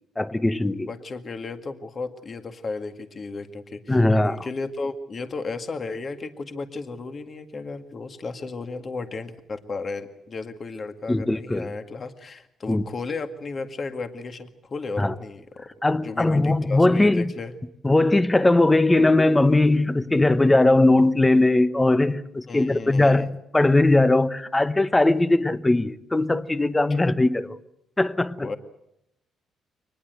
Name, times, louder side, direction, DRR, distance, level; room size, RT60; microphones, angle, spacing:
voice 1, 0.2-0.9 3.9-4.4 11.1-11.7 12.7-12.8 15.0-15.1 15.8-17.2 17.8-27.6 28.0-28.5, left 2 dB, 15° left, 1.1 m, -20 dB
voice 2, 0.9-15.7 16.0-17.5 22.5-23.3 26.9-27.0 28.4-28.6, left 3 dB, 40° left, 2.0 m, -34 dB
24.0 x 20.0 x 8.0 m
cardioid pair, 90°, 0 cm